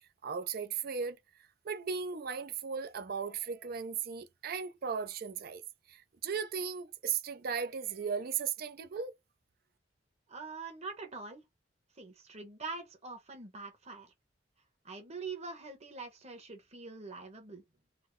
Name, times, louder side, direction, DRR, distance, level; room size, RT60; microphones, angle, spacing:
voice 1, 0.2-1.2 1.6-5.6 5.9-9.1, right 6 dB, 55° right, 0.4 m, -36 dB
voice 2, 10.3-11.4 12.0-14.1 14.8-17.6, right 4 dB, 40° right, 1.1 m, -44 dB
3.7 x 2.1 x 3.0 m
head